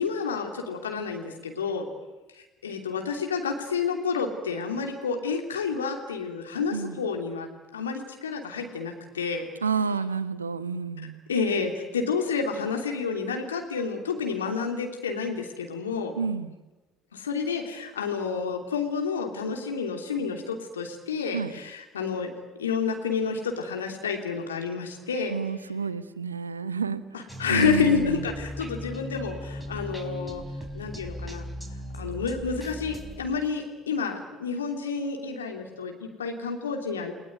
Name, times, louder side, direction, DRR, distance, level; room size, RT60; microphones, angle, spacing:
voice 1, 0.0-1.9 2.3-9.4 11.3-16.2 17.1-22.3 22.6-25.4 27.1-30.4 30.7-31.4 31.9-37.1, left 5 dB, 80° left, 3 dB, 3.0 m, -29 dB
voice 2, 6.7-7.0 9.6-11.2 16.2-16.5 21.3-21.5 25.3-27.0 27.5-28.2, right 5 dB, 85° right, 15 dB, 0.9 m, -29 dB
sound 1, 27.3-33.8, equal, 5° right, 4.5 m, -38 dB
29.5 x 19.0 x 9.4 m, 1.1 s
figure-of-eight pair, 55°, 0 cm